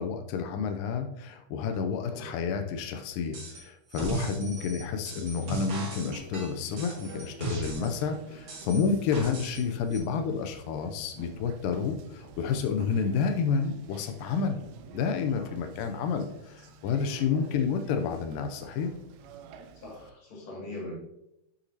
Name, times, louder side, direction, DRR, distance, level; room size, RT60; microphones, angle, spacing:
voice 1, 0.0-14.6 14.9-18.9, left 6 dB, 90° left, 6 dB, 1.9 m, -30 dB
sound 1, 3.3-3.6 3.9-8.0 8.5-9.6 9.9-10.0, right 3 dB, 40° right, 2.5 m, -37 dB
Conversation, 5.3-20.1, right 5 dB, 85° right, 2.6 m, -50 dB
voice 2, 19.7-20.9, left 2 dB, 50° left, -3 dB, 3.0 m, -42 dB
9.8 x 5.9 x 2.8 m, 0.83 s
omnidirectional pair, 4.6 m